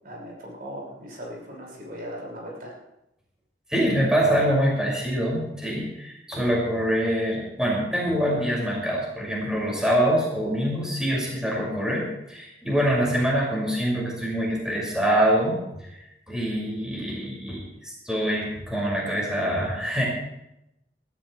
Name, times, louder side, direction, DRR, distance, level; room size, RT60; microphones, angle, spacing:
voice 1, 0.0-2.7, equal, 55° right, -3 dB, 6.1 m, -38 dB
voice 2, 3.7-15.6 16.3-20.0, equal, 5° right, -4 dB, 6.1 m, -25 dB
22.5 x 14.0 x 3.4 m, 0.86 s
head